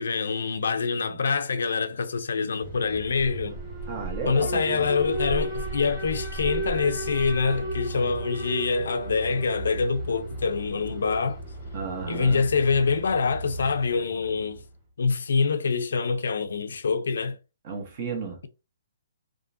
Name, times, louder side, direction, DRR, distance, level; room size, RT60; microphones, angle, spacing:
voice 1, 0.0-3.6 4.3-11.4 12.1-14.6 15.0-17.4, left 5 dB, 90° left, 0.6 m, -25 dB
Alarm, 2.6-14.6, right 2 dB, 10° right, 1.7 m, -35 dB
voice 2, 3.9-5.1 11.7-12.4 17.6-18.4, right 5 dB, 30° right, 1.1 m, -34 dB
3.7 x 3.3 x 2.7 m
hypercardioid pair, 175°, 0 cm